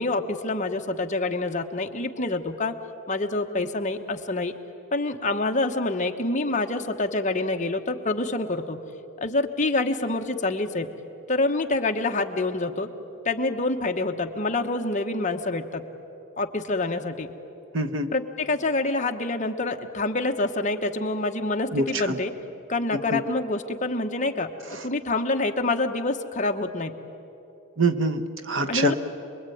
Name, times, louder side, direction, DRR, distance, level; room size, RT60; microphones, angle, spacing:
voice 1, 0.0-2.7 3.1-4.5 4.9-8.8 9.2-10.9 11.3-12.9 13.2-15.8 16.4-17.3 18.1-22.3 22.7-24.5 24.8-26.9 28.7-28.9, left 2 dB, 35° left, 4 dB, 1.2 m, -26 dB
voice 2, 17.7-18.1 21.7-22.2 22.9-23.2 24.7-24.9 27.8-28.9, right 2 dB, 55° right, 7 dB, 1.2 m, -25 dB
27.5 x 21.5 x 9.3 m, 2.9 s
head